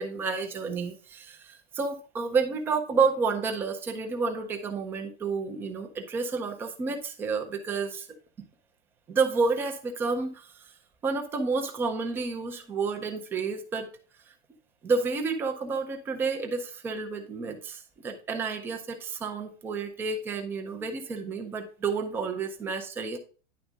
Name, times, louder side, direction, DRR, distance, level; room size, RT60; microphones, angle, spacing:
voice 1, 0.0-8.1 9.1-10.6 11.0-13.9 14.8-23.2, right 4 dB, 5° right, 4 dB, 0.4 m, -30 dB
10.0 x 3.5 x 4.9 m, 0.37 s
supercardioid pair, 165°, 34 cm